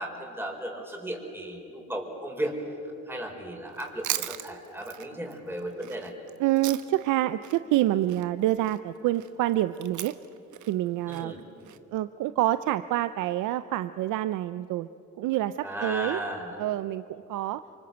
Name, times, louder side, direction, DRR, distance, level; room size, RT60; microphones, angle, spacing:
voice 1, 0.0-2.5 3.1-6.1 11.1-11.4 15.6-16.6, right 1 dB, 5° right, 1 dB, 5.0 m, -35 dB
Chewing mastication, 3.7-7.1 7.4-11.8, right 12 dB, 75° right, 1.2 m, -38 dB
voice 2, 6.4-10.1 10.7-11.3 11.9-14.9 15.2-16.2 16.6-17.6, right 14 dB, 90° right, 13 dB, 0.6 m, -27 dB
26.5 x 24.5 x 8.0 m, 2.8 s
cardioid pair, 90°, 30 cm